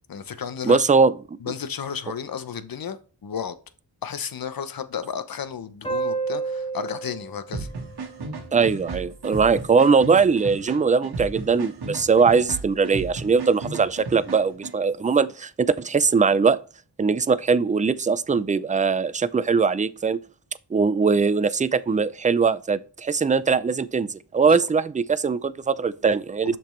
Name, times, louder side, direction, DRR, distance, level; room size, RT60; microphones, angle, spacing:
voice 1, 0.1-0.8 1.4-3.6 4.0-7.7 24.5-24.6 26.4-26.6, left 7 dB, 60° left, 0.9 m, -33 dB
voice 2, 0.6-1.1 8.5-16.6 17.0-20.2 20.7-26.5, right 5 dB, 20° right, 0.4 m, -21 dB
sound 1, 5.8-9.0, right 4 dB, 15° left, 1.6 m, -31 dB
sound 2, 7.5-14.7, right 3 dB, 75° right, 1.4 m, -35 dB
7.1 x 6.0 x 3.2 m
cardioid pair, 65°, 39 cm